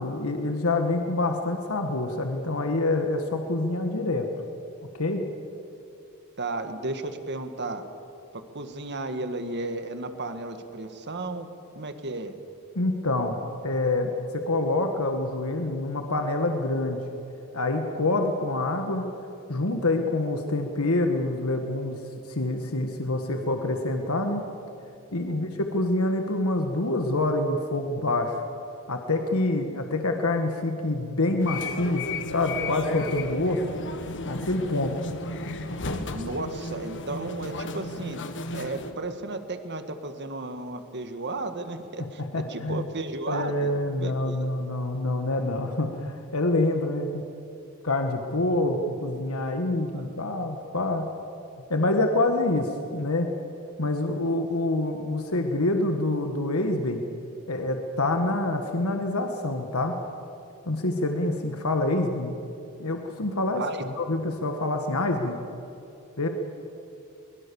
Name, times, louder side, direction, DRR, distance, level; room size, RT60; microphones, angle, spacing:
voice 1, 0.0-4.3 4.9-5.2 12.7-13.4 13.6-17.1 17.5-19.1 19.5-22.0 22.3-24.4 25.1-28.4 28.9-33.6 34.2-35.1 42.2-42.9 43.3-47.2 47.8-51.1 51.7-53.3 53.8-57.0 57.5-59.9 60.6-62.4 62.8-65.4 66.2-66.3, left 2 dB, 75° left, 5 dB, 1.6 m, -26 dB
voice 2, 6.4-7.8 8.3-11.5 11.7-12.3 25.3-25.5 36.1-43.7 44.0-44.5 63.5-63.9, right 2 dB, 50° right, 8 dB, 1.7 m, -34 dB
sound 1, 31.4-38.9, left 2 dB, 55° left, 1.6 m, -34 dB
23.5 x 22.0 x 7.1 m, 2.8 s
head